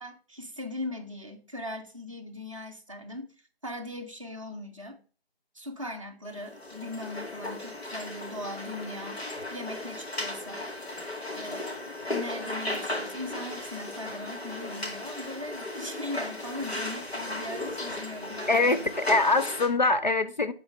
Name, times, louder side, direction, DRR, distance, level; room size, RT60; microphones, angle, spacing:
voice 1, 0.0-3.3 3.6-5.0 5.5-9.2 9.5-10.7 11.3-18.9, left 1 dB, 30° right, 0.6 m, -39 dB
sound 1, 6.3-19.7, left 2 dB, 80° left, 2.3 m, -36 dB
voice 2, 18.5-20.5, left 2 dB, 45° left, 0.5 m, -23 dB
5.5 x 3.9 x 5.1 m
figure-of-eight pair, 170°, 31 cm